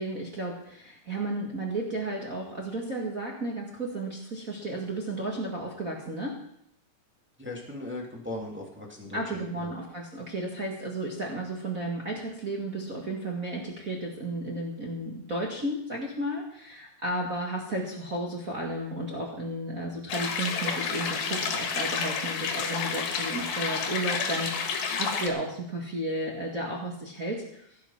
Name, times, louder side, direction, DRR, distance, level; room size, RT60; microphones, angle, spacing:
voice 1, 0.0-6.4 9.1-27.7, right 1 dB, 45° right, -1 dB, 1.1 m, -33 dB
voice 2, 7.4-9.7, left 2 dB, 5° right, -2 dB, 1.7 m, -38 dB
sound 1, 20.1-25.3, left 6 dB, 65° left, 3.2 m, -30 dB
16.0 x 10.5 x 5.9 m, 0.70 s
omnidirectional pair, 5.0 m